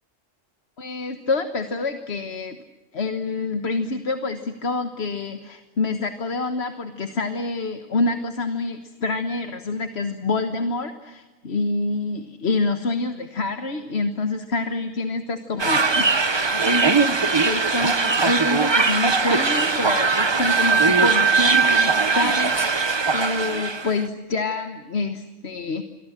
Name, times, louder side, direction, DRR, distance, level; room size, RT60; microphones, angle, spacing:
voice 1, 0.8-2.6 2.9-16.1 16.5-25.8, left 3 dB, 55° left, 8 dB, 1.6 m, -27 dB
sound 1, 15.6-24.0, right 4 dB, 25° right, 0.8 m, -20 dB
28.5 x 23.0 x 7.4 m, 1.2 s
omnidirectional pair, 1.4 m